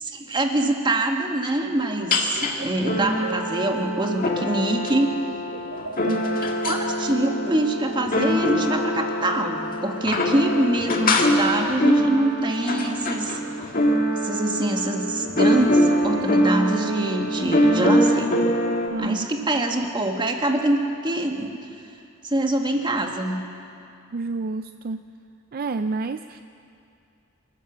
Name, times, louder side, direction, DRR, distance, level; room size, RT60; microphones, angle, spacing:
voice 1, 0.0-5.1 6.6-13.4 14.2-18.3 19.0-21.5 22.2-23.4, right 1 dB, 25° right, 3 dB, 1.7 m, -24 dB
sound 1, 1.7-4.9 5.2-8.3, right 2 dB, 90° right, 1.3 m, -39 dB
sound 2, 2.1-2.5 2.9-18.9, equal, 45° left, 1.9 m, -23 dB
voice 2, 18.9-19.3 24.1-25.0 25.5-26.4, right 3 dB, 45° right, 10 dB, 0.4 m, -29 dB
27.5 x 14.0 x 7.3 m, 2.5 s
head